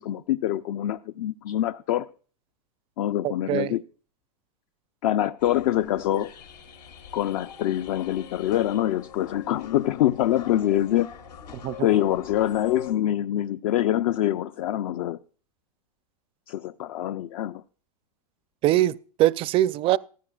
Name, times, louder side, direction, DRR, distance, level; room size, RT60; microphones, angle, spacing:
voice 1, 0.0-2.1 3.0-3.8 5.0-6.3 7.1-11.1 11.8-15.2 16.5-17.6, left 12 dB, 60° left, 0.5 m, -25 dB
voice 2, 3.2-3.8 11.6-11.9 18.6-20.0, right 14 dB, 25° right, 0.4 m, -23 dB
sound 1, 5.4-12.9, left 9 dB, 90° left, 2.7 m, -44 dB
15.0 x 14.0 x 2.3 m
hypercardioid pair, 130°, 21 cm